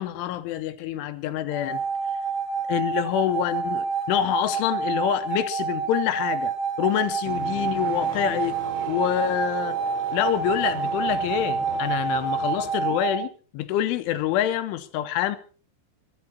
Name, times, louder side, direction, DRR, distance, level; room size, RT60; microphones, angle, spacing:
voice 1, 0.0-1.8 2.7-8.6 8.9-9.8 10.1-13.3 13.5-15.4, left 12 dB, 80° left, 3.1 m, -26 dB
sound 1, 1.5-13.2, right 5 dB, 85° right, 5.8 m, -28 dB
sound 2, 7.2-12.7, right 4 dB, 65° right, 5.3 m, -38 dB
23.0 x 11.0 x 4.3 m
omnidirectional pair, 6.0 m